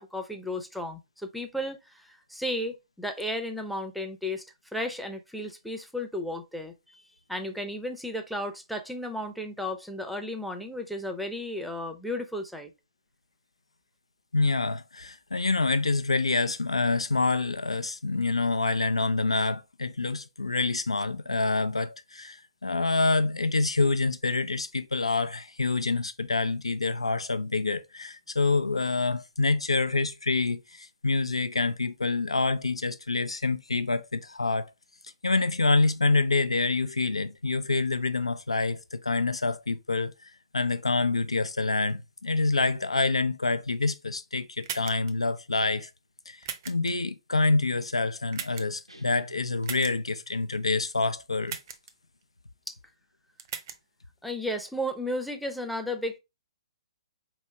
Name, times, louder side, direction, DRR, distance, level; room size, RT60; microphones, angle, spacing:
voice 1, 0.0-4.4 4.7-7.0 7.3-12.7 54.2-56.2, left 1 dB, ahead, 0.6 m, -34 dB
voice 2, 14.3-34.7 35.2-45.9 46.3-51.6, left 3 dB, 75° left, 0.5 m, -27 dB
sound 1, 44.6-45.1 46.4-46.9 48.3-48.8 49.6-49.9 51.5-51.9 53.4-53.8, right 8 dB, 40° right, 0.6 m, -37 dB
sound 2, 48.9-50.6, right 4 dB, 90° right, 0.9 m, -51 dB
4.4 x 3.1 x 3.2 m
figure-of-eight pair, 125°, 3 cm